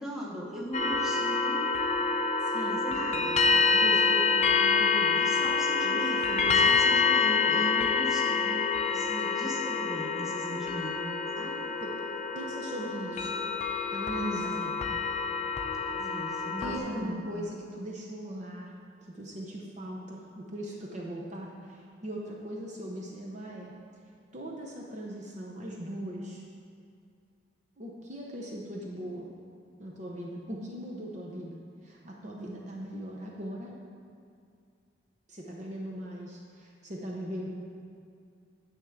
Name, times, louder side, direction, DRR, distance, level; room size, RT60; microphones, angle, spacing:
voice 1, 0.0-1.7 2.6-3.4 5.2-10.9 11.4-11.6 14.2-14.7 15.8-17.2, equal, 5° right, -5 dB, 1.1 m, -39 dB
sound 1, 0.7-16.8, left 4 dB, 35° left, 0.6 m, -27 dB
voice 2, 2.4-2.8 3.1-5.2 5.8-6.7 11.8-11.9 12.3-13.3 13.9-14.6 16.6-18.7 19.1-23.7 24.3-26.4 27.8-29.2 29.8-31.6 31.8-33.7 35.3-37.5, right 1 dB, 40° right, -2 dB, 0.7 m, -39 dB
9.7 x 3.6 x 7.0 m, 2.4 s
head